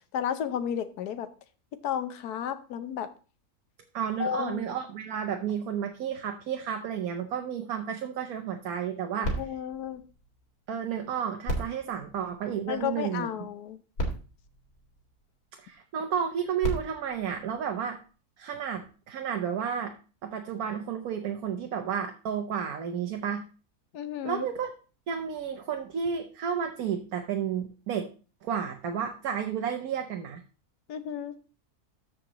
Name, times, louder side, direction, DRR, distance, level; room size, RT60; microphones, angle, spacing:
voice 1, 0.1-1.3 1.8-3.1 4.2-4.6 9.4-10.0 12.7-13.8 23.9-24.5 30.9-31.3, left 9 dB, 85° left, 11 dB, 1.3 m, -32 dB
voice 2, 3.9-9.4 10.7-13.5 15.6-18.0 18.4-19.9 20.2-23.4 24.2-24.7 25.1-28.1 28.4-30.4, right 8 dB, 75° right, 4 dB, 1.3 m, -32 dB
sound 1, 9.2-10.9 11.4-13.0 13.7-13.8 13.9-15.5 16.3-18.2 18.9-19.0, right 1 dB, 65° left, 2.6 m, -36 dB
13.5 x 5.1 x 2.9 m, 0.36 s
omnidirectional pair, 1.6 m